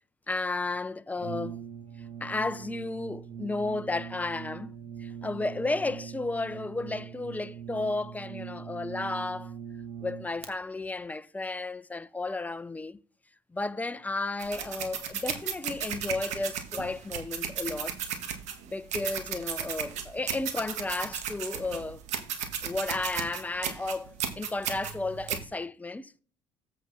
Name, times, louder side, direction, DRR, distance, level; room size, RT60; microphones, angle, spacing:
voice 1, 0.3-1.6 2.2-4.7 5.0-9.5 10.0-13.0 13.5-18.0 18.7-22.0 22.6-26.1, left 2 dB, 10° left, 0.7 m, -33 dB
Brass instrument, 1.2-10.5, right 8 dB, 55° right, 2.1 m, -42 dB
sound 1, 14.4-25.4, right 8 dB, 70° right, 1.8 m, -35 dB
8.5 x 6.1 x 4.2 m
supercardioid pair, 80°, 12 cm